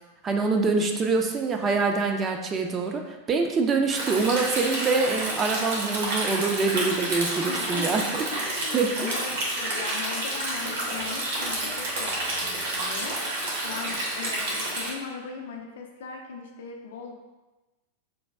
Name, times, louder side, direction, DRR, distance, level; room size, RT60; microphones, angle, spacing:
voice 1, 0.2-8.0 8.4-9.2, right 4 dB, 25° right, 3 dB, 0.4 m, -25 dB
Stream, 3.9-14.9, right 1 dB, 55° right, 0.9 m, -30 dB
voice 2, 7.5-17.1, left 5 dB, 60° left, 2 dB, 0.4 m, -39 dB
5.2 x 2.2 x 2.2 m, 1.1 s
figure-of-eight pair, 90°, 0 cm